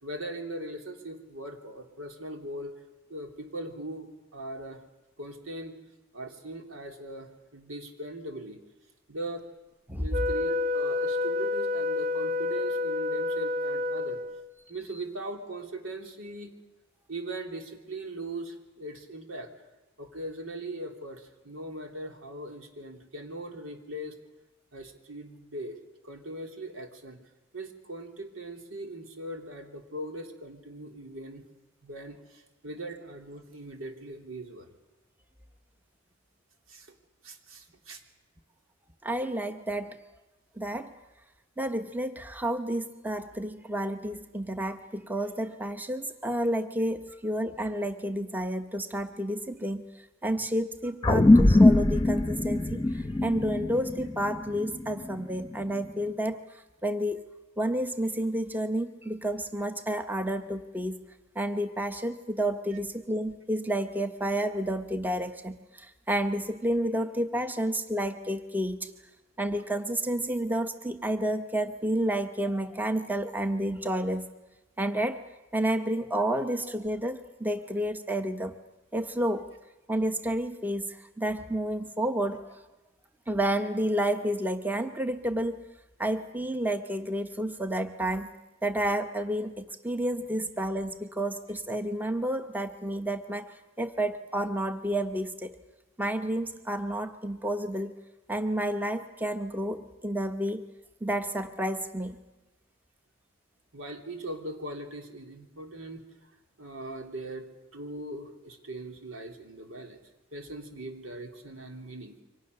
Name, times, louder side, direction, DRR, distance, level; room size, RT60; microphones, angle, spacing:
voice 1, 0.0-2.8 3.1-4.8 5.2-5.8 6.1-8.6 9.1-9.5 10.0-14.2 14.7-16.5 17.1-19.5 20.0-24.2 24.7-25.8 26.0-27.2 27.5-31.5 31.8-34.7 36.7-37.0 37.2-38.0 103.7-106.3 106.6-110.0 110.3-112.2, right 1 dB, 90° right, 4 dB, 3.3 m, -40 dB
Wind instrument woodwind instrument, 10.1-14.5, left 3 dB, 45° right, 1.0 m, -29 dB
voice 2, 39.0-40.0 40.6-40.9 41.6-49.9 50.2-57.2 57.6-61.0 61.3-68.9 69.4-74.3 74.8-75.2 75.5-78.6 78.9-79.5 79.9-82.5 83.3-85.6 86.0-88.3 88.6-95.6 96.0-98.0 98.3-100.6 101.0-102.2, right 1 dB, 10° right, 8 dB, 1.0 m, -30 dB
sound 1, 51.0-55.8, left 2 dB, 20° left, 0.8 m, -22 dB
28.0 x 24.5 x 6.7 m, 1.0 s
head